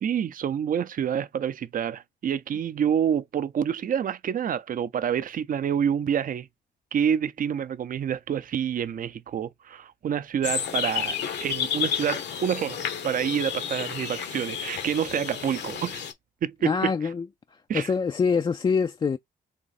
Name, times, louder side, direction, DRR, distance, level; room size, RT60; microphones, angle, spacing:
voice 1, 0.0-6.5 6.9-12.8 13.0-16.0 16.4-16.9 17.7-17.9, right 8 dB, 45° right, 0.5 m, -27 dB
sound 1, 10.4-16.1, left 8 dB, 70° left, 0.8 m, -31 dB
voice 2, 16.6-17.3 17.7-19.2, left 5 dB, 25° left, 0.3 m, -24 dB
3.6 x 3.1 x 4.0 m
supercardioid pair, 70°, 19 cm